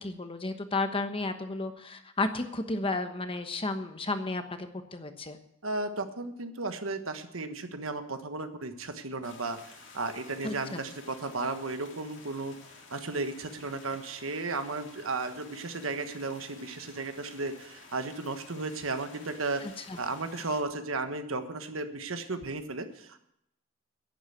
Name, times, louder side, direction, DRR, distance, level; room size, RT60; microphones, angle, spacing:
voice 1, 0.0-5.4 10.4-10.8 19.6-20.0, left 2 dB, 25° left, 8 dB, 1.1 m, -33 dB
voice 2, 5.6-12.5 12.9-19.6 20.0-23.2, right 3 dB, 80° right, 8 dB, 1.4 m, -34 dB
sound 1, 9.2-20.6, left 4 dB, 60° left, 2.9 m, -52 dB
11.5 x 10.5 x 8.1 m, 0.77 s
head